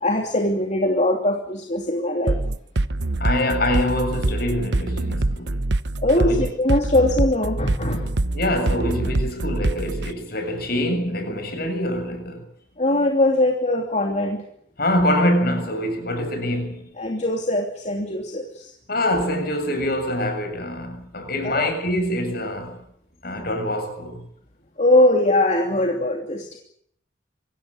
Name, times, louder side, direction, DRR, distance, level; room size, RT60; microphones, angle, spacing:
voice 1, 0.0-2.4 6.0-8.1 12.8-14.4 17.0-18.7 21.4-21.7 24.8-26.6, left 1 dB, 40° left, 2.9 m, -21 dB
sound 1, 2.3-10.1, right 2 dB, 65° right, 1.0 m, -24 dB
voice 2, 3.2-5.6 6.2-6.5 8.3-12.4 14.8-16.9 18.9-22.8 23.2-24.2, left 1 dB, 55° left, 7.3 m, -25 dB
25.5 x 17.0 x 10.0 m
head